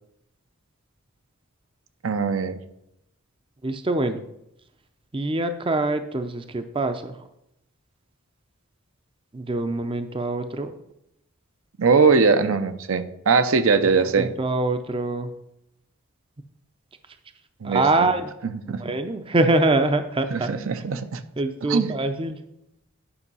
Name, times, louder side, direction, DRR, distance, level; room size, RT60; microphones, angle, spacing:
voice 1, 2.0-2.6 11.8-14.3 17.6-18.1 18.7-18.9 20.3-21.2 21.7-21.9, right 4 dB, 65° right, 10 dB, 0.6 m, -21 dB
voice 2, 3.6-4.2 5.1-7.3 9.3-10.7 14.2-15.3 17.6-18.3 18.7-20.5 21.4-22.4, right 2 dB, 25° right, 9 dB, 0.5 m, -24 dB
9.9 x 5.3 x 5.4 m, 0.82 s
head